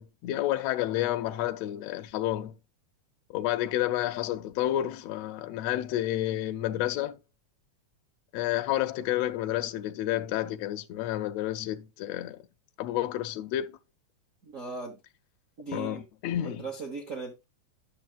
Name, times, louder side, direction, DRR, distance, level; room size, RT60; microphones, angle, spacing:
voice 1, 0.0-2.5 3.3-7.2 8.3-12.5 12.8-13.7 15.7-16.7, left 13 dB, 80° left, 1.6 m, -30 dB
voice 2, 14.4-15.0 15.6-16.0 16.4-17.4, right 4 dB, 65° right, 0.7 m, -38 dB
11.0 x 6.6 x 2.4 m
omnidirectional pair, 3.5 m